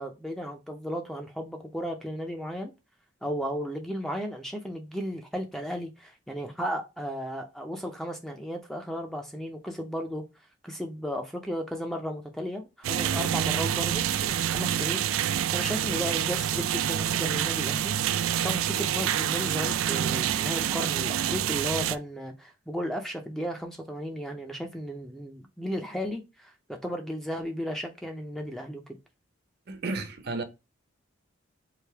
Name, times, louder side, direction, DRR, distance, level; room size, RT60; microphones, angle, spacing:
voice 1, 0.0-2.7 3.2-10.2 10.6-17.9 18.3-29.0, equal, ahead, 0.4 m, -34 dB
sound 1, 12.8-22.0, right 10 dB, 85° right, 0.3 m, -27 dB
voice 2, 29.7-30.4, right 3 dB, 50° right, 0.6 m, -32 dB
3.3 x 2.6 x 4.5 m
head